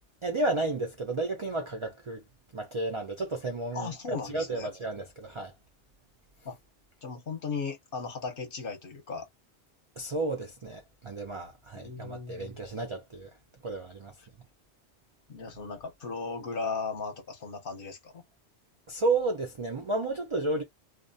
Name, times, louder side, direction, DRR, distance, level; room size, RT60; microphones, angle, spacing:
voice 1, 0.2-2.2 2.5-5.5 10.0-13.3 13.6-14.1 18.9-20.6, right 2 dB, 55° right, 0.3 m, -32 dB
voice 2, 3.7-4.7 6.4-6.6 7.0-9.3 11.7-12.5 14.2-14.3 15.3-18.2, left 4 dB, 55° left, 0.8 m, -36 dB
2.4 x 2.0 x 2.6 m
omnidirectional pair, 1.2 m